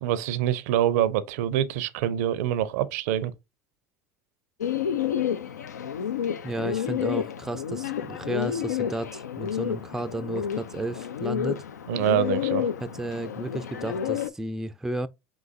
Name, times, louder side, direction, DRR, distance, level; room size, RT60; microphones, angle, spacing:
voice 1, 0.0-3.3 11.9-12.7, right 11 dB, 65° right, 0.4 m, -25 dB
Bird, 4.6-14.3, left 9 dB, 85° left, 0.4 m, -30 dB
voice 2, 6.4-11.6 12.8-15.1, right 1 dB, 5° right, 0.3 m, -33 dB
4.8 x 3.8 x 2.5 m
hypercardioid pair, 70°, 9 cm